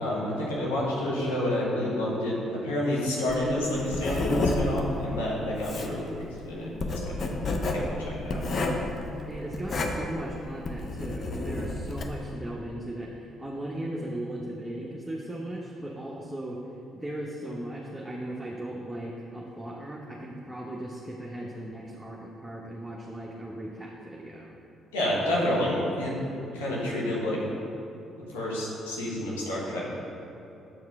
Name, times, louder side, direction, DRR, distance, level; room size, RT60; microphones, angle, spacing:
voice 1, 0.0-7.4 7.7-8.4 24.9-27.4 28.3-29.8, left 1 dB, 85° left, -5 dB, 1.2 m, -29 dB
Writing, 3.3-12.2, left 2 dB, 50° left, 0.6 m, -31 dB
voice 2, 9.1-16.6 16.9-24.5, right 1 dB, 10° right, -3 dB, 0.8 m, -37 dB
7.2 x 4.7 x 3.6 m, 2.9 s
hypercardioid pair, 45°, 0 cm